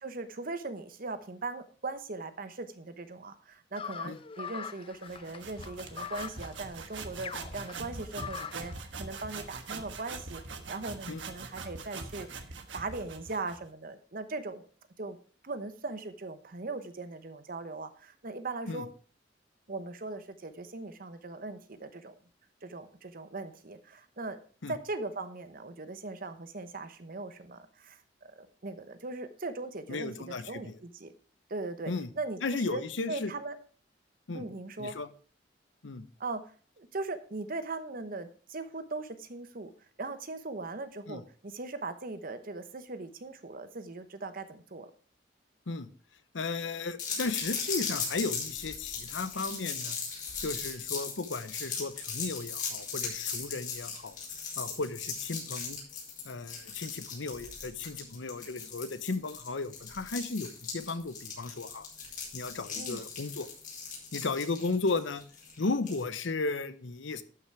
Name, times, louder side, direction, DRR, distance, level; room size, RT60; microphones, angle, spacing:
voice 1, 0.0-8.7 9.0-12.3 12.7-14.7 15.0-15.2 15.4-18.9 19.7-22.1 22.6-24.4 24.7-31.1 31.5-32.8 33.1-33.6 34.3-35.0 36.2-36.4 36.8-39.7 40.0-44.9 62.8-63.0, right 3 dB, 50° right, 11 dB, 1.0 m, -39 dB
sound 1, 3.8-8.8, left 7 dB, 30° left, 0.4 m, -42 dB
sound 2, 5.0-13.7, right 4 dB, 85° right, 1.3 m, -43 dB
voice 2, 29.9-30.8 31.9-32.1 32.4-33.3 34.3-34.5 34.8-35.1 35.8-36.0 41.1-41.2 45.7-45.9 46.3-50.0 50.4-54.2 54.6-55.8 56.2-61.9 62.3-63.5 64.1-65.2 65.6-67.2, left 3 dB, 90° left, 13 dB, 0.8 m, -35 dB
sound 3, 47.0-66.0, left 5 dB, 45° left, 4.5 m, -38 dB
12.0 x 6.0 x 4.8 m, 0.40 s
head